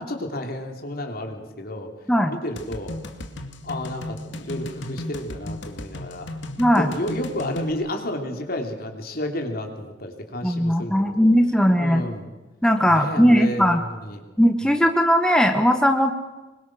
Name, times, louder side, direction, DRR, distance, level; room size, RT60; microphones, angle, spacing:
voice 1, 0.0-1.9 2.3-3.0 3.6-6.3 6.8-11.3 11.8-12.3 12.9-14.2, left 1 dB, 55° left, 3 dB, 3.5 m, -31 dB
sound 1, 2.6-7.7, left 1 dB, 70° left, 2.3 m, -35 dB
voice 2, 6.6-6.9 10.4-12.0 12.6-13.8 14.4-16.1, equal, 5° left, 5 dB, 1.2 m, -18 dB
26.0 x 23.0 x 6.3 m, 1.1 s
head